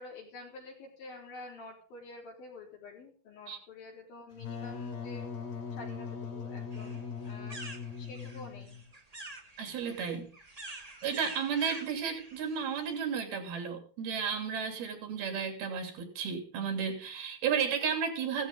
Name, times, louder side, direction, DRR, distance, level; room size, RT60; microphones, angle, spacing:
voice 1, 0.0-5.3 5.7-8.8, left 3 dB, 70° left, 0 dB, 5.5 m, -48 dB
Wind instrument woodwind instrument, 4.3-8.9, left 6 dB, 85° left, 4.5 m, -40 dB
sound 1, 6.7-13.0, right 2 dB, 25° right, 0.8 m, -47 dB
voice 2, 9.6-10.3 10.7-18.5, right 6 dB, 80° right, 5 dB, 4.8 m, -33 dB
16.5 x 13.5 x 3.8 m, 0.38 s
omnidirectional pair, 4.3 m